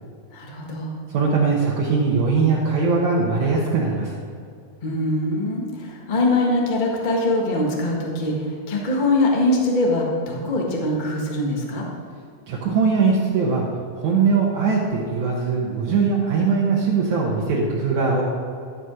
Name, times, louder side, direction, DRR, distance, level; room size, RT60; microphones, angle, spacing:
voice 1, 0.3-0.9 4.8-11.9, left 2 dB, 60° left, -2 dB, 0.4 m, -22 dB
voice 2, 1.1-4.1 12.5-13.7 14.0-18.2, right 4 dB, 65° right, -3 dB, 2.4 m, -21 dB
14.0 x 5.3 x 6.3 m, 2.3 s
omnidirectional pair, 3.9 m